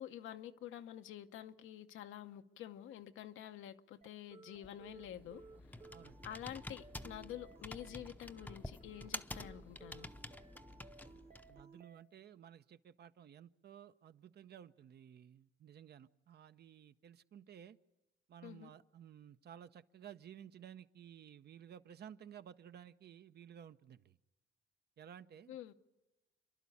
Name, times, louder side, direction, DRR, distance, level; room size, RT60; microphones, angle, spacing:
voice 1, 0.0-5.4 6.2-10.1 18.4-18.7 25.5-25.7, left 11 dB, 85° left, 0.9 m, -49 dB
sound 1, 4.0-12.0, right 4 dB, 30° right, 1.1 m, -60 dB
Computer keyboard, 4.6-11.6, left 1 dB, 10° left, 0.7 m, -49 dB
voice 2, 11.5-17.8 18.3-24.2 25.0-25.6, right 9 dB, 55° right, 0.7 m, -55 dB
28.0 x 11.5 x 8.5 m
cardioid pair, 90°, 20 cm